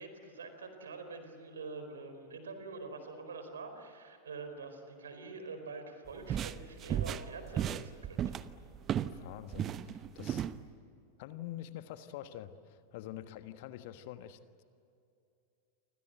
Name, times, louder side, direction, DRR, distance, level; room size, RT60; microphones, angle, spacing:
voice 1, 0.0-8.4, right 4 dB, 70° right, 7 dB, 4.5 m, -45 dB
sound 1, 6.1-9.2 9.5-10.6, right 10 dB, 30° right, 0.9 m, -35 dB
voice 2, 9.1-10.5 11.2-14.6, left 12 dB, 50° left, 11 dB, 1.4 m, -46 dB
29.5 x 25.5 x 7.9 m, 2.6 s
figure-of-eight pair, 90°, 0 cm